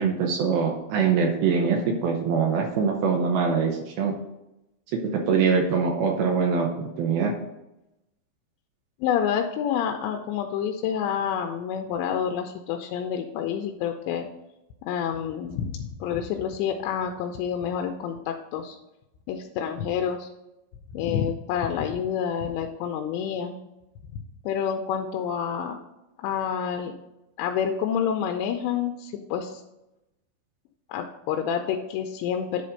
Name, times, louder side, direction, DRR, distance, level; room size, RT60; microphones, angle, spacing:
voice 1, 0.0-4.2 4.9-7.3, right 5 dB, 75° right, 2 dB, 2.5 m, -23 dB
voice 2, 9.0-14.3 14.9-18.8 19.3-20.3 20.9-23.6 24.4-25.8 26.2-26.9 27.4-29.6 30.9-32.6, left 8 dB, 85° left, 4 dB, 2.8 m, -28 dB
10.0 x 4.3 x 5.1 m, 0.91 s
omnidirectional pair, 5.3 m